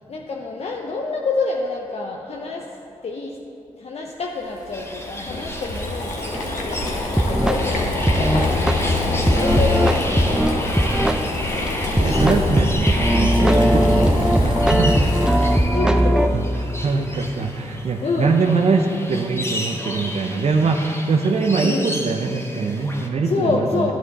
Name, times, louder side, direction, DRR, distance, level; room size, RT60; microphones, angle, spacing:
voice 1, 0.1-2.8 3.0-3.4 3.8-6.3 6.6-8.7 9.1-11.2 15.7-16.4 18.0-18.4 21.6-21.9 23.2-23.9, left 3 dB, 60° left, 0 dB, 0.7 m, -28 dB
Boiling, 4.5-15.8, left 2 dB, 80° left, 1.1 m, -25 dB
sound 1, 4.7-23.1, left 1 dB, 20° left, 1.4 m, -33 dB
sound 2, 6.3-6.4 6.9-7.0 7.2-7.7 8.1-8.8 9.3-11.2 11.7-11.8 12.0-16.3, equal, 5° right, 0.5 m, -19 dB
voice 2, 12.0-15.0 16.3-16.5 16.8-23.9, right 4 dB, 60° right, 3 dB, 0.6 m, -22 dB
9.9 x 7.9 x 4.0 m, 2.9 s
supercardioid pair, 40°, 12 cm